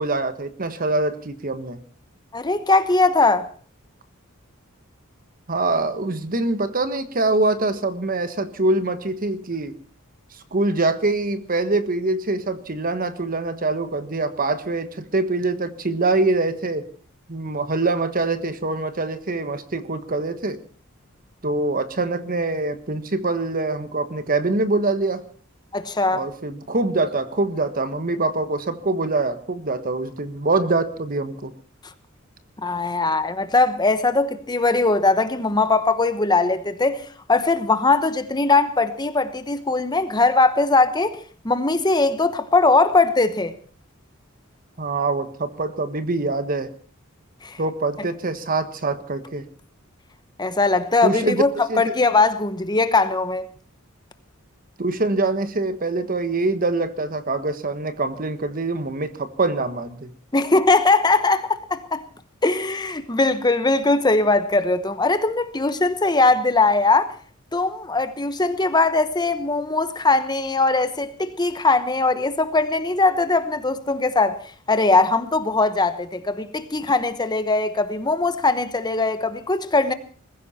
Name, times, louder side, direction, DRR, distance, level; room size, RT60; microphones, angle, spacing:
voice 1, 0.0-1.8 5.5-9.7 10.5-16.8 17.3-20.6 21.4-25.2 26.1-31.5 44.8-46.7 47.6-49.4 51.0-51.4 51.7-51.8 54.8-60.1, right 2 dB, 45° right, 1.3 m, -24 dB
voice 2, 2.3-3.5 25.7-26.3 32.6-41.2 41.4-43.5 47.4-47.6 48.0-48.1 50.4-51.5 51.8-53.5 60.3-62.0 62.4-67.1 67.5-74.4 74.7-79.9, left 3 dB, 20° left, 1.0 m, -20 dB
21.0 x 15.0 x 4.3 m
head